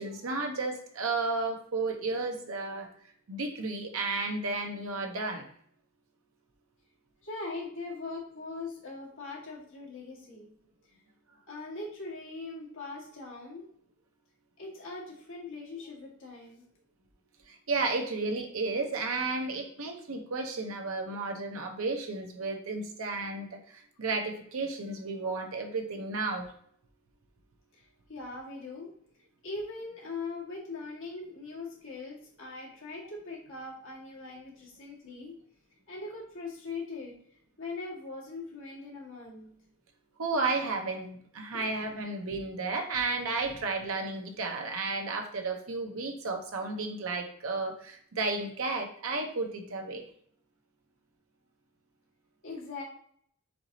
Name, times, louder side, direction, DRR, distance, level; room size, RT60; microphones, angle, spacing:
voice 1, 0.0-2.9 3.3-5.4 17.5-26.5 40.2-50.0, right 3 dB, 70° right, 4 dB, 0.8 m, -33 dB
voice 2, 7.2-10.5 11.5-13.6 14.6-16.6 27.7-27.8 28.1-28.9 29.4-35.3 35.9-37.1 37.6-39.5 41.5-41.7 52.4-52.8, left 3 dB, 65° left, -5 dB, 1.7 m, -41 dB
4.5 x 4.0 x 2.7 m, 0.62 s
head